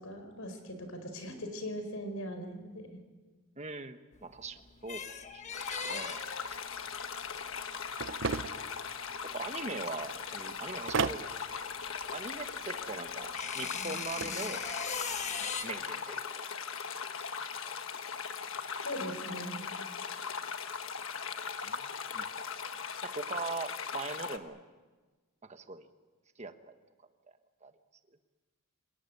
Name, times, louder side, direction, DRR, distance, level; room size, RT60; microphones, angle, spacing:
voice 1, 0.0-3.0 18.8-19.7, equal, 80° left, 7 dB, 4.8 m, -40 dB
voice 2, 3.6-5.4 5.7-6.2 6.5-6.6 9.3-11.3 11.6-11.8 12.1-14.6 15.6-16.6 17.2-17.3 17.6-17.7 21.6-22.3 23.0-24.6 25.4-25.9 26.4-26.5 27.6-27.7, right 3 dB, 30° right, 8 dB, 1.3 m, -41 dB
sound 1, 4.1-10.7 11.0-15.6, left 5 dB, 35° left, 1.4 m, -40 dB
sound 2, 5.5-24.4, left 6 dB, 65° left, 1.4 m, -39 dB
sound 3, 8.0-8.7 10.9-11.3 13.9-14.4, right 5 dB, 60° right, 0.7 m, -32 dB
26.5 x 18.5 x 9.5 m, 1.3 s
head